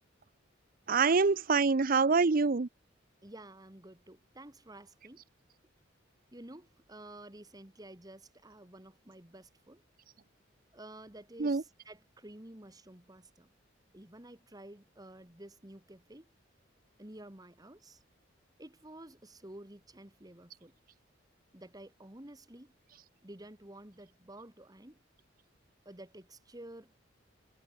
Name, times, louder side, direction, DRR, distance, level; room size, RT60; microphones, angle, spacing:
voice 1, 0.9-2.7 11.4-11.6, right 4 dB, 45° right, 0.6 m, -25 dB
voice 2, 3.2-5.2 6.3-9.8 10.7-13.5 13.9-16.3 17.0-18.0 18.6-20.7 21.5-22.7 23.2-25.0 25.9-26.9, right 1 dB, 20° right, 1.9 m, -51 dB
head